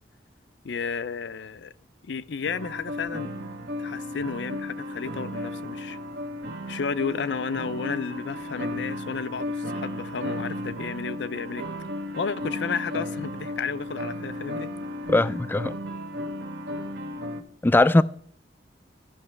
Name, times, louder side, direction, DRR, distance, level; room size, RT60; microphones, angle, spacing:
voice 1, 0.6-1.7 2.1-3.3 3.8-6.0 6.7-11.6 12.2-14.7, left 5 dB, 70° left, 0.5 m, -32 dB
sound 1, 2.4-17.4, left 1 dB, 65° right, 0.9 m, -34 dB
voice 2, 15.1-15.7 17.6-18.0, left 2 dB, 10° left, 0.3 m, -19 dB
14.0 x 5.8 x 3.2 m
head